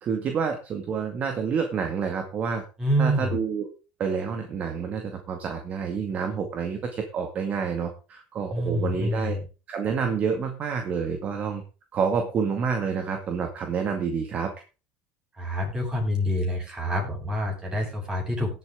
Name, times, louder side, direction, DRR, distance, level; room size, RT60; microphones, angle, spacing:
voice 1, 0.0-2.6 3.0-3.7 4.0-9.4 9.7-11.6 11.9-14.5, right 6 dB, 35° right, 4 dB, 2.1 m, -28 dB
voice 2, 2.8-3.4 8.5-9.4 15.4-18.6, equal, 20° right, 0 dB, 7.6 m, -27 dB
18.0 x 8.6 x 3.8 m, 0.34 s
supercardioid pair, 125°, 4 cm